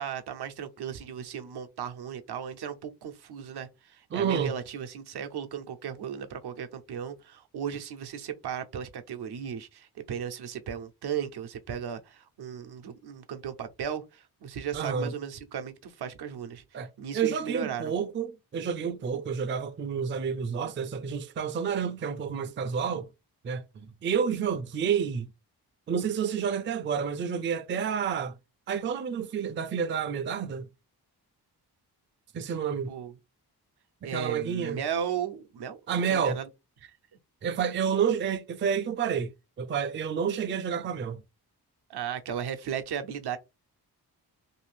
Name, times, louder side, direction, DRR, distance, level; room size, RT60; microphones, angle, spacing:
voice 1, 0.0-16.6 17.0-17.9 32.9-33.1 34.0-35.8 36.1-36.5 36.8-36.9 41.9-43.4, right 8 dB, 75° right, 0.6 m, -36 dB
voice 2, 4.1-4.5 14.7-15.1 16.7-16.9 17.1-23.1 23.4-25.3 25.9-28.3 28.7-30.6 32.3-32.9 34.0-34.8 35.9-36.4 37.4-39.3 39.6-41.2, right 7 dB, 30° right, 0.4 m, -29 dB
2.7 x 2.5 x 3.2 m
cardioid pair, 80°, 40 cm